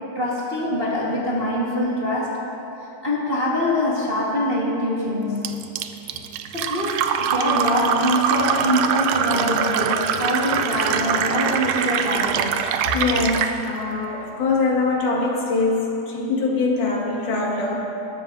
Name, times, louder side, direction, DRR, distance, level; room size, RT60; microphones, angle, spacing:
voice 1, 0.0-2.4 3.0-5.6 6.5-12.6, left 1 dB, 35° right, -6 dB, 1.0 m, -24 dB
Fill (with liquid), 5.4-13.6, right 8 dB, 80° right, 1.8 m, -23 dB
voice 2, 12.8-17.8, left 3 dB, 85° left, -3 dB, 3.4 m, -23 dB
20.5 x 13.0 x 2.6 m, 3.0 s
omnidirectional pair, 3.5 m